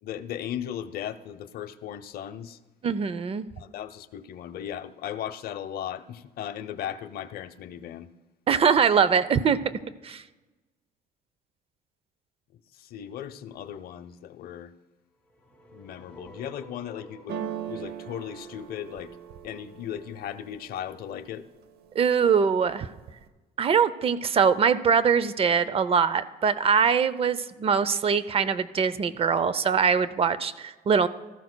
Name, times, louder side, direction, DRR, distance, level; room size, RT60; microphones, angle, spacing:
voice 1, 0.0-2.6 3.6-8.1 12.7-14.7 15.7-17.4 17.7-19.2 19.4-21.5, left 10 dB, 65° left, 11 dB, 0.6 m, -37 dB
voice 2, 2.8-3.5 8.5-9.6 10.0-10.2 22.0-22.9 23.6-31.1, right 6 dB, 35° right, 16 dB, 0.5 m, -22 dB
sound 1, 15.3-19.4, equal, 5° left, 2.3 m, -50 dB
sound 2, 17.3-21.2 21.6-22.2 22.5-23.3, right 9 dB, 70° right, 0.8 m, -39 dB
16.5 x 14.0 x 2.2 m, 1.2 s
cardioid pair, 110°, 17 cm